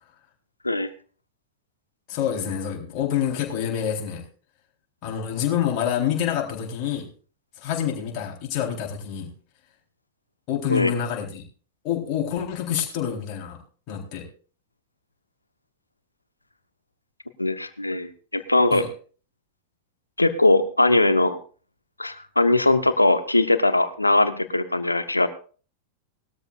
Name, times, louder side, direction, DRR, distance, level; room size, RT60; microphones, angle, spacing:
voice 1, 2.1-4.2 5.0-7.1 7.6-9.3 10.5-11.4 11.8-13.6 13.9-14.3 18.7-18.9, left 9 dB, 45° left, 0 dB, 3.9 m, -27 dB
voice 2, 17.4-18.8 20.2-21.4 22.0-25.3, left 2 dB, 90° left, 12 dB, 1.1 m, -20 dB
20.0 x 13.0 x 2.5 m, 0.40 s
figure-of-eight pair, 90°, 0 cm